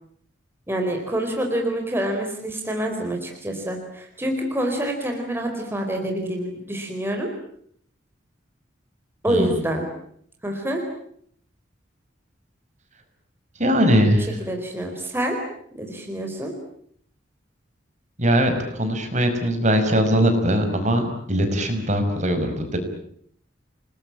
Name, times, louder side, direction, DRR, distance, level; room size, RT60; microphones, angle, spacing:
voice 1, 0.7-7.3 9.2-9.9 10.4-10.8 14.4-15.4 15.7-16.5, right 1 dB, 10° right, 2 dB, 4.4 m, -26 dB
voice 2, 9.3-9.6 13.6-14.4 18.2-22.8, equal, 40° right, 6 dB, 5.6 m, -21 dB
30.0 x 20.5 x 8.9 m, 0.65 s
head